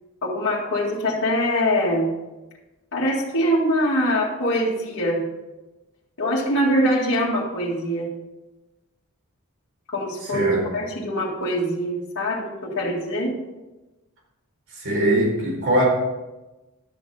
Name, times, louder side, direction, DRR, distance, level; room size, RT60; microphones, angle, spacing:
voice 1, 0.2-2.1 2.9-5.2 6.2-8.1 9.9-13.3, equal, 55° left, -6 dB, 2.0 m, -23 dB
voice 2, 10.3-10.7 14.7-15.8, right 1 dB, 60° right, -3 dB, 4.3 m, -21 dB
12.0 x 6.6 x 4.9 m, 1.1 s
head